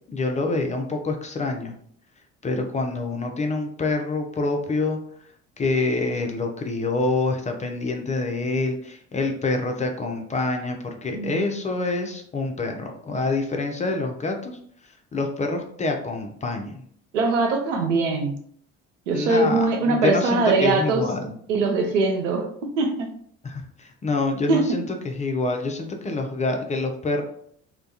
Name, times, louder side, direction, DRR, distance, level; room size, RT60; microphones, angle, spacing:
voice 1, 0.1-1.7 2.4-5.0 5.6-16.8 19.1-21.3 23.4-27.2, left 3 dB, 20° left, 3 dB, 0.4 m, -26 dB
voice 2, 17.1-18.4 19.1-21.0 21.5-22.5 22.8-23.1 24.5-24.7, right 3 dB, 85° right, 4 dB, 0.5 m, -22 dB
2.2 x 2.1 x 2.7 m, 0.63 s
hypercardioid pair, 55°, 36 cm